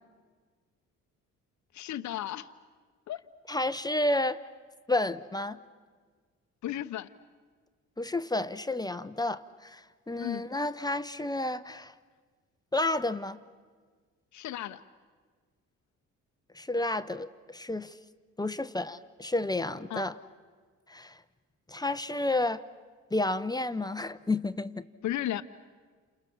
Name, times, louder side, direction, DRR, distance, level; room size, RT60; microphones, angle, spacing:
voice 1, 1.7-2.5 3.1-3.2 6.6-7.1 10.2-10.5 14.3-14.8 19.9-20.1 25.0-25.4, left 12 dB, 70° left, 10 dB, 0.9 m, -34 dB
voice 2, 3.5-4.4 4.9-5.6 8.0-11.9 12.7-13.4 16.5-18.0 18.4-20.2 20.9-21.2 21.7-22.6 23.1-24.9, left 2 dB, 15° left, 12 dB, 0.8 m, -31 dB
29.5 x 28.0 x 7.1 m, 1.5 s
cardioid pair, 90°, 30 cm